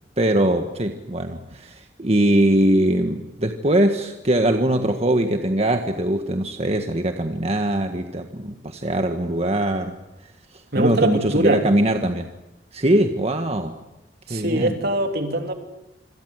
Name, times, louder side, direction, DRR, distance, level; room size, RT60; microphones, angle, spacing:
voice 1, 0.2-9.9 10.8-12.3 12.7-13.7 14.3-14.7, right 1 dB, 35° right, 6 dB, 1.6 m, -21 dB
voice 2, 10.7-11.6 14.3-15.5, right 2 dB, 60° right, 5 dB, 3.5 m, -22 dB
27.0 x 26.0 x 8.1 m, 0.95 s
head